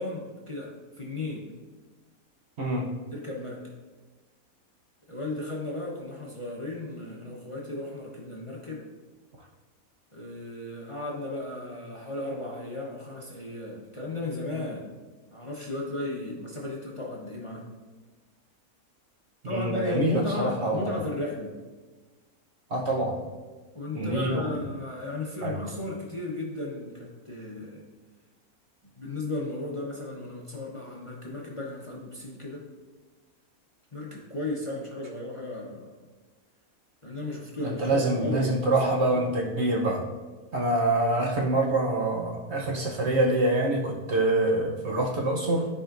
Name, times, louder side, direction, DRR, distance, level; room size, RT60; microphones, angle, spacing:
voice 1, 0.0-1.5 3.1-3.6 5.1-8.8 10.1-14.9 15.3-17.7 19.4-21.5 23.7-27.9 28.9-32.7 33.9-36.1 37.0-38.7 39.1-39.3, left 2 dB, 25° left, -3 dB, 0.8 m, -35 dB
voice 2, 19.5-21.0 22.7-23.2 23.9-24.5 25.4-25.6 37.6-40.1 40.5-45.7, right 2 dB, 55° right, 0 dB, 1.0 m, -26 dB
13.0 x 5.0 x 2.5 m, 1.3 s
omnidirectional pair, 1.5 m